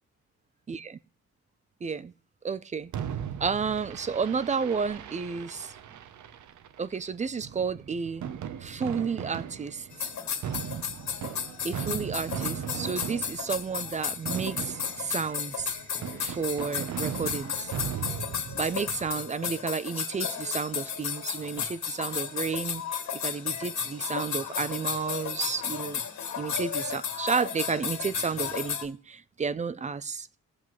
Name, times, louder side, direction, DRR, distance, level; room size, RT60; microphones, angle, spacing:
voice 1, 0.7-1.0 1.8-2.1 2.4-2.9 3.4-5.8 6.8-8.3 8.6-9.9 11.6-15.8 16.2-17.7 18.5-22.8 23.2-26.0 26.4-30.3, right 5 dB, 25° right, 0.4 m, -31 dB
Fireworks, 2.9-19.1, right 9 dB, 75° right, 0.8 m, -38 dB
sound 1, 9.9-28.9, left 7 dB, 65° left, 2.1 m, -34 dB
21.5 x 7.4 x 3.1 m
wide cardioid pair, 150°, 30 cm